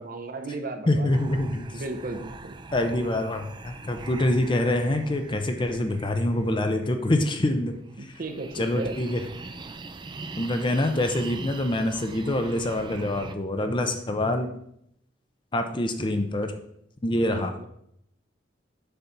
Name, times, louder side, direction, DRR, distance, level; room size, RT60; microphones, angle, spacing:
voice 1, 0.0-1.4 1.7-2.5 8.0-8.9 17.3-17.7, right 2 dB, 50° right, 6 dB, 0.8 m, -35 dB
voice 2, 0.9-1.7 2.7-7.8 8.6-9.2 10.4-14.5 15.5-16.5 17.0-17.5, left 1 dB, 25° left, 6 dB, 0.6 m, -25 dB
sound 1, 1.1-13.3, right 3 dB, 25° right, 0.4 m, -42 dB
6.9 x 4.0 x 5.8 m, 0.73 s
head